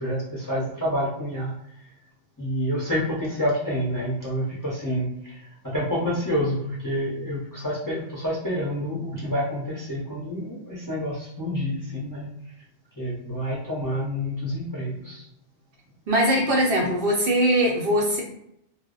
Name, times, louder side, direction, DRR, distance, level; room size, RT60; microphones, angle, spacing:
voice 1, 0.0-1.5 2.4-5.5 5.7-12.3 12.9-15.2, equal, 20° left, -7 dB, 0.6 m, -28 dB
voice 2, 16.1-18.2, equal, 60° right, -2 dB, 0.7 m, -21 dB
2.1 x 2.0 x 3.6 m, 0.76 s
omnidirectional pair, 1.2 m